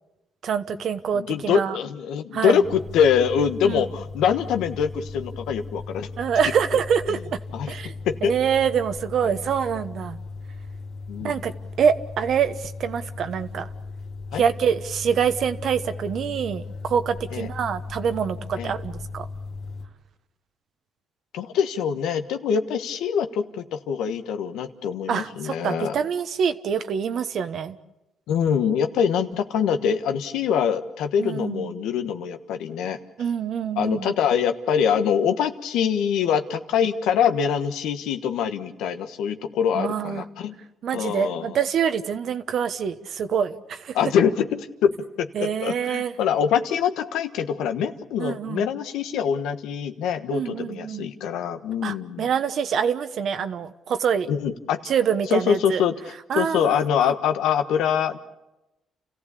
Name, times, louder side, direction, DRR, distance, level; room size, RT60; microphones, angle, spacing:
voice 1, 0.4-1.8 2.3-2.6 3.6-3.9 6.2-7.4 7.7-7.9 8.2-10.2 11.2-11.5 11.8-13.7 14.3-19.3 25.1-27.8 31.2-31.7 33.2-34.1 39.7-40.2 40.8-44.0 45.3-46.1 48.2-48.7 50.3-51.1 51.8-54.3 54.9-55.8 56.3-57.1, right 7 dB, 65° right, 10 dB, 1.1 m, -25 dB
voice 2, 1.1-6.1 7.1-7.2 7.5-7.7 8.0-8.3 11.1-11.3 14.3-14.4 17.3-17.5 18.6-18.7 21.3-25.9 28.3-33.0 33.8-40.6 40.9-41.6 43.9-52.3 54.3-54.9 55.3-55.9 56.3-58.2, left 7 dB, 90° left, 8 dB, 1.3 m, -24 dB
sound 1, 2.6-19.9, left 3 dB, 70° left, 2.6 m, -37 dB
29.5 x 15.5 x 8.4 m, 0.96 s
cardioid pair, 90°, 0 cm